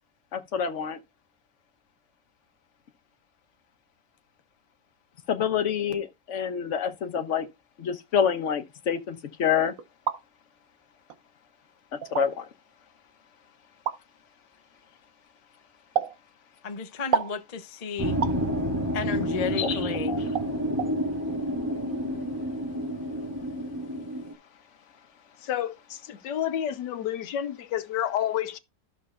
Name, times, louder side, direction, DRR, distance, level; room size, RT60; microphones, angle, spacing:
voice 1, 0.3-1.0 5.3-7.5 7.8-9.7 12.1-12.5 18.4-18.5 19.6-20.2, left 7 dB, 50° left, 1.2 m, -27 dB
sound 1, 9.8-10.2 11.1-11.2 12.0-12.3 13.9-14.0 16.0-16.2 17.1-17.4 18.2-18.4 19.7-19.8 20.4-20.5 20.8-20.9, right 8 dB, 60° right, 1.2 m, -28 dB
voice 2, 16.6-18.2 18.9-20.2, left 6 dB, 35° left, 0.7 m, -33 dB
sound 2, 18.0-24.3, equal, 10° right, 1.7 m, -29 dB
voice 3, 25.4-28.6, left 10 dB, 80° left, 1.4 m, -30 dB
13.0 x 6.7 x 2.4 m
omnidirectional pair, 1.8 m